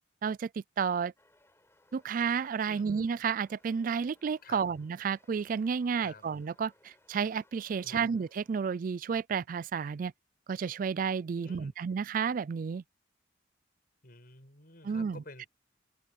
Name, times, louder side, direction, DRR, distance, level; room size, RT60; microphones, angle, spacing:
voice 1, 0.8-1.1 1.9-10.1 10.5-12.8 14.8-15.2, right 6 dB, 45° right, 0.3 m, -31 dB
sound 1, 1.2-8.8, left 1 dB, 15° left, 5.0 m, -67 dB
voice 2, 11.4-11.7 14.0-15.5, left 2 dB, 50° left, 6.9 m, -51 dB
open air
head